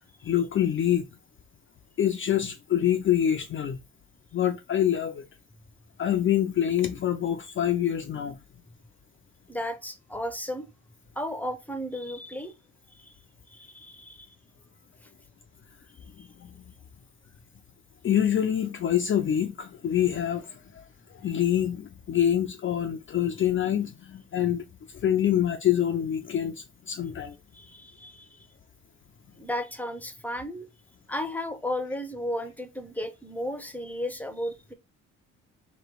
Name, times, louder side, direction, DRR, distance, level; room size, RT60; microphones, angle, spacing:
voice 1, 0.2-1.1 2.0-3.8 4.3-5.2 6.0-8.4 16.4-16.5 18.0-20.6 21.1-24.6 25.0-27.3, left 10 dB, 40° left, 0.5 m, -25 dB
voice 2, 9.5-10.7 11.2-12.5 13.5-14.3 16.2-16.3 27.5-28.4 29.4-30.7 31.1-34.7, left 1 dB, 5° left, 0.7 m, -34 dB
3.1 x 2.9 x 4.5 m
cardioid pair, 90°, 30 cm